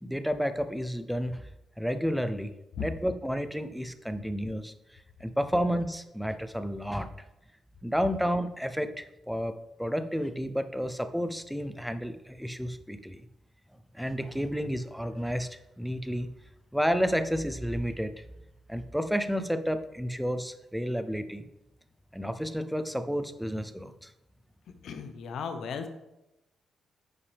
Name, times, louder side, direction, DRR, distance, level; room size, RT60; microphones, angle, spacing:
voice 1, 0.0-1.5 1.8-2.5 2.8-7.1 7.8-9.5 9.8-13.2 13.9-16.3 16.7-18.2 18.7-21.4 22.1-24.1, equal, ahead, 10 dB, 0.5 m, -31 dB
voice 2, 24.8-25.9, left 6 dB, 70° left, 8 dB, 0.8 m, -35 dB
9.5 x 5.7 x 3.4 m, 0.93 s
cardioid pair, 125°, 0 cm